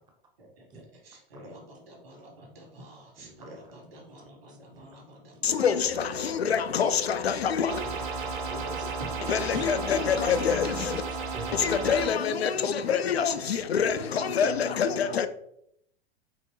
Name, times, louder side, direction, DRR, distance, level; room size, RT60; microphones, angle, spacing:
voice 1, 1.0-6.2 8.4-10.0 11.7-12.2 13.9-14.0, right 1 dB, 70° right, -1 dB, 1.7 m, -45 dB
voice 2, 3.2-3.5 3.9-4.0 4.5-4.9 6.8-7.3 7.8-9.1 10.8-10.9 11.3-11.8 12.8-12.9 13.4-13.5, right 3 dB, 15° right, 3 dB, 0.6 m, -48 dB
voice 3, 5.4-7.8 9.3-11.0 11.5-15.3, left 7 dB, 75° left, 11 dB, 0.5 m, -26 dB
sound 1, 7.7-12.1, right 4 dB, 50° right, 0.9 m, -33 dB
4.6 x 2.9 x 3.1 m, 0.71 s
figure-of-eight pair, 95°, 31 cm